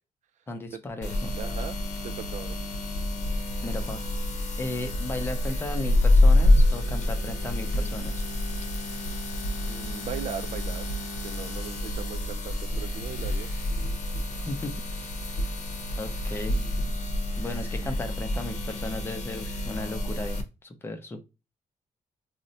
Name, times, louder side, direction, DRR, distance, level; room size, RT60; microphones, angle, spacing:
voice 1, 0.5-1.3 3.6-4.0 4.6-8.2 14.3-15.1 16.0-16.6 17.4-21.2, left 2 dB, 15° left, 0.5 m, -35 dB
sound 1, 1.0-20.4, left 1 dB, 60° left, 0.7 m, -27 dB
voice 2, 1.3-1.8 2.0-2.6 9.7-10.9 11.2-13.5, right 8 dB, 65° right, 0.4 m, -38 dB
2.6 x 2.1 x 3.9 m
wide cardioid pair, 145°, 13 cm